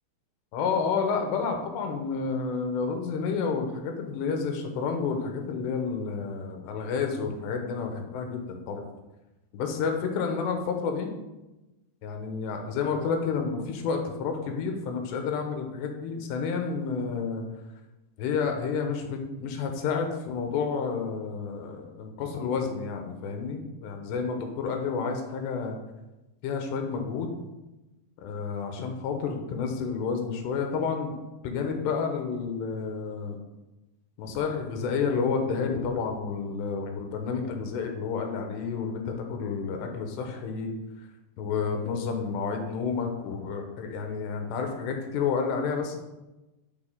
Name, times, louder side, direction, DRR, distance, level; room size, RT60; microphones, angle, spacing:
voice 1, 0.5-8.9 9.5-11.1 12.0-17.5 18.2-25.8 26.4-27.3 28.2-33.4 34.2-40.7 41.4-46.0, left 5 dB, 85° left, 4 dB, 3.1 m, -30 dB
10.0 x 4.5 x 3.7 m, 1.0 s
omnidirectional pair, 4.9 m